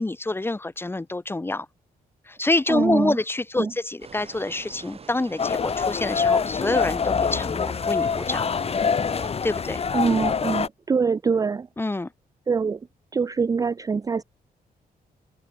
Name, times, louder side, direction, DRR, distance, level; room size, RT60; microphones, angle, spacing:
voice 1, 0.0-1.7 2.3-8.5 9.4-9.8 11.8-12.1, left 2 dB, 15° left, 3.0 m, -26 dB
voice 2, 2.7-3.2 3.6-3.7 9.9-11.7 12.5-12.8 13.1-14.2, right 5 dB, 20° right, 0.4 m, -24 dB
sound 1, 4.0-9.3, right 5 dB, 40° right, 4.3 m, -45 dB
sound 2, 5.4-10.7, left 6 dB, 40° left, 2.5 m, -25 dB
wide cardioid pair, 135°, 16 cm